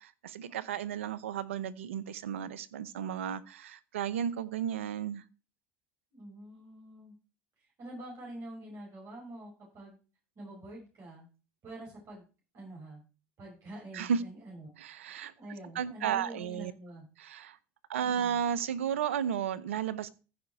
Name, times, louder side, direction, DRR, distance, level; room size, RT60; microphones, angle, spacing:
voice 1, 0.0-5.2 13.9-14.2 14.8-15.3 15.7-16.7 17.2-17.6 17.9-20.1, right 8 dB, 85° right, 0.7 m, -33 dB
voice 2, 6.1-7.1 7.8-10.0 10.4-11.3 11.6-12.2 12.5-13.0 13.4-14.7 15.1-17.1 18.0-18.4, right 1 dB, 50° right, 5.7 m, -46 dB
14.5 x 5.1 x 4.7 m
hypercardioid pair, 70°, 7 cm